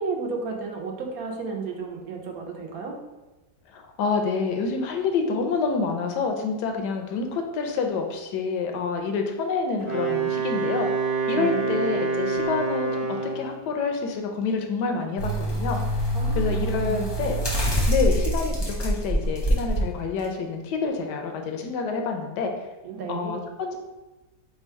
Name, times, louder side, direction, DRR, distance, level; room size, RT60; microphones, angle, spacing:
voice 1, 0.0-3.0 11.3-11.8 16.1-17.2 22.8-23.4, right 4 dB, 70° right, 2 dB, 1.0 m, -33 dB
voice 2, 3.7-10.9 11.3-15.8 16.3-17.4 17.9-22.5 23.1-23.8, left 4 dB, 80° left, 3 dB, 1.2 m, -27 dB
Wind instrument woodwind instrument, 9.8-13.5, right 4 dB, 35° right, 0.6 m, -26 dB
sound 1, 15.2-19.8 20.2-20.3, right 1 dB, 25° left, 0.6 m, -25 dB
3.5 x 2.3 x 4.4 m, 1.1 s
omnidirectional pair, 1.8 m